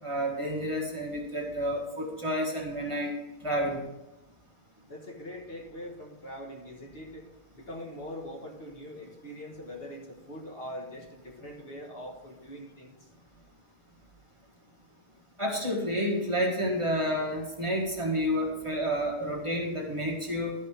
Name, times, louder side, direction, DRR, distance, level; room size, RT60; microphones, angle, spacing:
voice 1, 0.0-3.1 3.4-3.9 15.4-20.5, equal, 25° right, -2 dB, 1.7 m, -30 dB
voice 2, 4.9-13.1, left 1 dB, 55° left, 0 dB, 1.6 m, -43 dB
11.5 x 5.4 x 5.0 m, 0.97 s
omnidirectional pair, 1.2 m